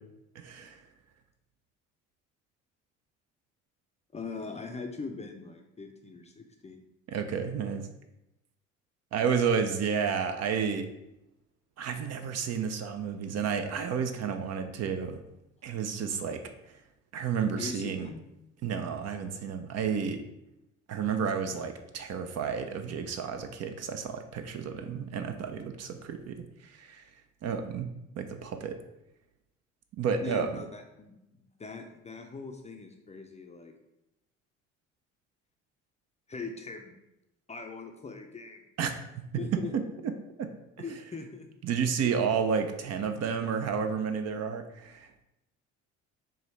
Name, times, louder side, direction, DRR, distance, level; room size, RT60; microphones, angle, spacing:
voice 1, 0.4-0.8 7.1-7.8 9.1-10.9 11.8-15.2 15.6-16.4 17.1-18.1 18.6-20.2 20.9-27.0 27.4-27.9 28.2-28.7 30.0-30.5 38.8-38.9 39.7-39.8 40.4-40.5 41.6-45.2, right 6 dB, 45° right, 7 dB, 0.5 m, -31 dB
voice 2, 4.1-6.8 17.6-18.2 30.2-33.7 36.3-37.0 37.5-38.6 39.3-39.7 40.8-41.5 42.0-42.2, left 4 dB, 20° left, 4 dB, 0.5 m, -41 dB
4.7 x 2.7 x 3.2 m, 0.90 s
hypercardioid pair, 60°, 36 cm